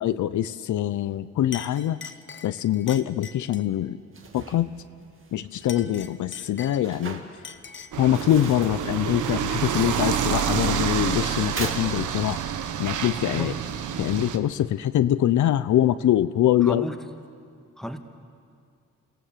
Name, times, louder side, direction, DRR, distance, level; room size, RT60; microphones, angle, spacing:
voice 1, 0.0-2.0 2.4-4.0 4.3-4.7 5.3-7.2 8.0-12.4 12.8-13.5 14.0-16.9, left 12 dB, 80° left, 14 dB, 0.6 m, -23 dB
Chink clink, 1.0-1.2 1.5-3.7 5.5-7.1 7.4-8.0, left 6 dB, 40° left, 1.1 m, -42 dB
sound 1, 4.0-12.5, right 4 dB, 45° right, 2.2 m, -41 dB
sound 2, 7.9-14.4, right 9 dB, 85° right, 1.2 m, -28 dB
voice 2, 16.6-17.0 17.8-18.0, equal, ahead, 6 dB, 1.6 m, -32 dB
29.0 x 16.0 x 7.4 m, 2.2 s
cardioid pair, 100°, 29 cm